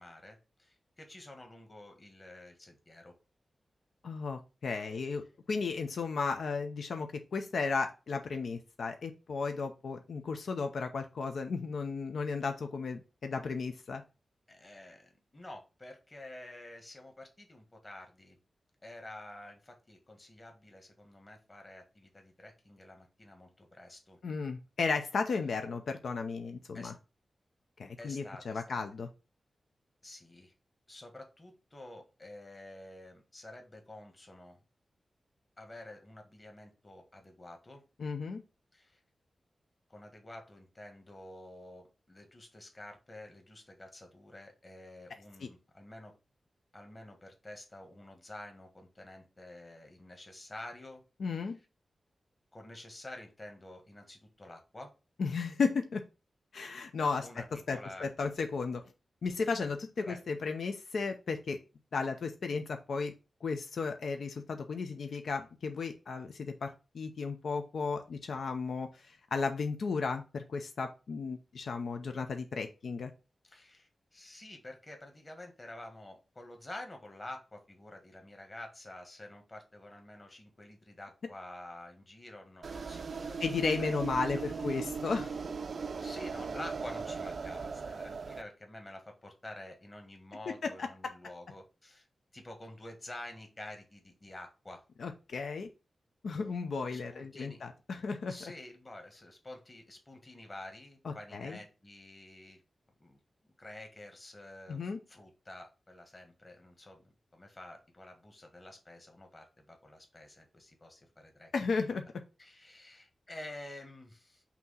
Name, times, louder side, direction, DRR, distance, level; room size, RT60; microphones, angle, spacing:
voice 1, 0.0-3.1 4.8-5.0 14.5-18.4 18.8-24.2 26.7-26.9 28.0-28.8 30.0-30.5 30.9-34.6 35.6-37.8 38.7-39.0 39.9-46.1 46.7-51.0 51.3-51.6 52.5-54.9 57.2-58.1 60.0-60.2 73.4-83.4 83.8-84.9 85.2-85.3 85.7-92.0 92.3-94.8 96.9-97.7 98.3-102.6 103.0-103.2 103.6-111.5 112.4-114.4, left 1 dB, 25° left, 3 dB, 1.5 m, -49 dB
voice 2, 4.0-14.0 24.2-26.9 27.8-29.1 38.0-38.4 45.4-45.5 51.2-51.6 55.2-56.0 56.5-58.8 59.2-61.6 61.9-63.1 63.4-73.1 83.4-85.3 90.8-90.9 95.0-95.7 96.2-98.3 101.0-101.6 104.7-105.0 111.5-112.1, left 4 dB, 75° left, 6 dB, 0.6 m, -34 dB
sound 1, 82.6-88.4, right 5 dB, 55° right, 0.4 m, -38 dB
6.0 x 2.9 x 5.6 m, 0.30 s
wide cardioid pair, 165°, 0 cm